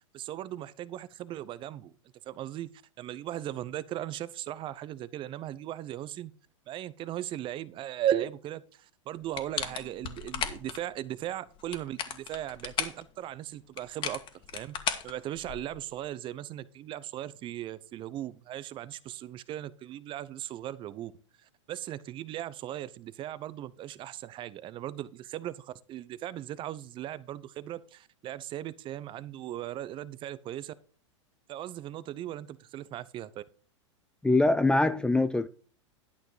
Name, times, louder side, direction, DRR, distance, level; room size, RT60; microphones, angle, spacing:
voice 1, 0.1-1.9 2.3-2.7 3.0-6.3 6.7-14.2 14.5-14.8 15.0-21.1 21.7-30.7 31.5-33.4, right 12 dB, 30° right, 0.8 m, -37 dB
sound 1, 9.3-10.8 11.6-13.0 13.8-15.8, left 8 dB, 30° left, 1.8 m, -35 dB
voice 2, 34.2-35.5, left 2 dB, 5° left, 0.4 m, -23 dB
12.0 x 6.0 x 5.0 m
hypercardioid pair, 115°, 16 cm